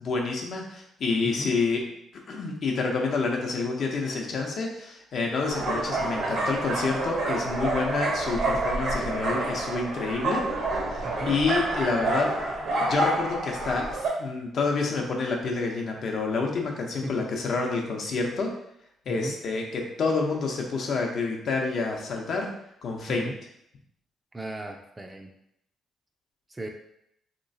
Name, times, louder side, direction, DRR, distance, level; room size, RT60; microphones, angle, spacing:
voice 1, 0.0-1.8 2.3-10.4 10.9-12.3 12.8-18.5 19.1-22.5 22.8-23.3, left 4 dB, 60° left, 1 dB, 0.7 m, -28 dB
sound 1, 5.5-14.1, right 2 dB, 70° right, 0.9 m, -28 dB
voice 2, 11.0-11.3 17.0-17.2 19.1-19.4 23.1-23.3 24.3-25.3 26.5-26.7, right 1 dB, 20° right, 3 dB, 0.4 m, -36 dB
3.2 x 2.9 x 2.7 m, 0.75 s
cardioid pair, 90°, 0 cm